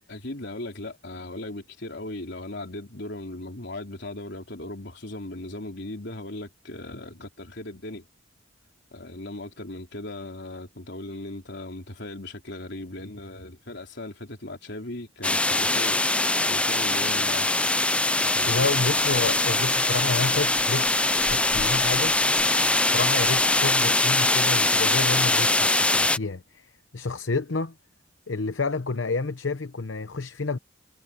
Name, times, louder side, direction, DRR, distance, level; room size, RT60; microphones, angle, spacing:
voice 1, 0.1-8.1 8.9-16.0 16.5-17.6 18.2-18.7 21.3-21.4, left 1 dB, 60° left, 4.1 m, -38 dB
sound 1, 15.2-26.2, left 2 dB, 5° left, 0.5 m, -22 dB
voice 2, 18.5-22.1 22.8-27.7 28.3-30.6, left 3 dB, 80° left, 0.9 m, -29 dB
sound 2, 18.6-23.7, right 4 dB, 35° right, 4.8 m, -40 dB
head